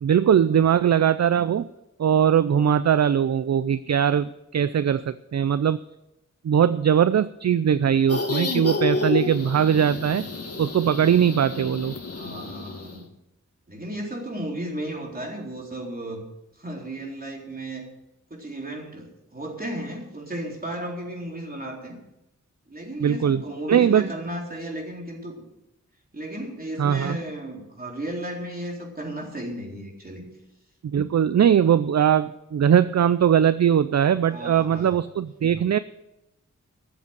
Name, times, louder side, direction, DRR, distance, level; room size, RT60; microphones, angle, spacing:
voice 1, 0.0-1.7 2.0-5.8 6.4-10.3 10.6-11.9 23.0-23.4 23.7-24.1 26.8-27.2 30.8-35.8, right 8 dB, 60° right, 15 dB, 0.5 m, -20 dB
sound 1, 8.1-13.0, left 3 dB, 50° left, 1.6 m, -30 dB
voice 2, 12.1-13.1 13.7-16.2 16.5-17.9 18.3-22.0 22.7-25.4 26.1-30.3 34.3-35.0, right 1 dB, 30° right, -1 dB, 3.9 m, -34 dB
13.5 x 7.9 x 8.0 m, 0.89 s
wide cardioid pair, 70°, 30 cm